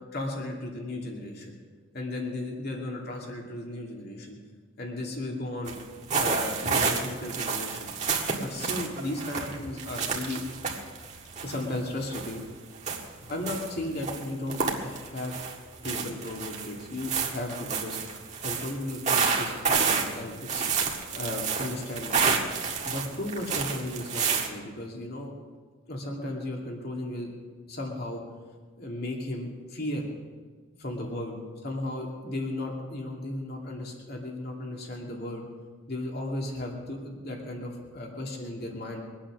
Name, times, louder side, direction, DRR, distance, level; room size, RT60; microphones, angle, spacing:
voice 1, 0.1-1.6 1.9-4.4 4.8-5.7 6.1-7.9 8.4-10.5 11.4-12.4 13.2-15.3 15.8-18.0 18.4-20.6 21.1-22.2 22.8-25.3 25.9-27.3 27.7-28.2 28.8-30.0 30.8-31.4 31.6-35.4 35.9-39.0, left 1 dB, 50° left, 0 dB, 2.6 m, -35 dB
sound 1, 5.6-5.8 6.1-12.4 12.7-13.7 14.0-15.5 15.8-24.5, right 5 dB, 35° right, 1.7 m, -29 dB
23.5 x 8.9 x 6.2 m, 1.5 s
head